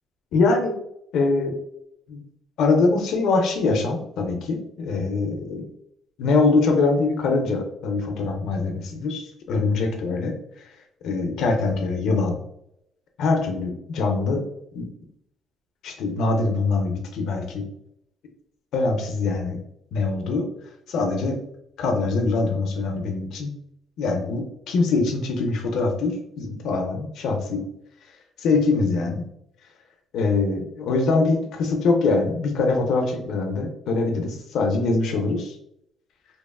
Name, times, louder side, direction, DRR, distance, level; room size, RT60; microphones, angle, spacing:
voice 1, 0.3-0.7 1.1-1.5 2.1-2.2 2.6-5.6 6.2-10.3 11.0-12.4 13.2-14.4 14.7-14.9 15.8-17.6 18.7-19.6 19.9-20.4 20.9-21.4 21.8-23.5 24.0-27.6 28.4-29.3 30.1-35.6, left 3 dB, 65° left, 3 dB, 0.4 m, -23 dB
2.9 x 2.3 x 2.2 m, 0.76 s
cardioid pair, 160°, 0 cm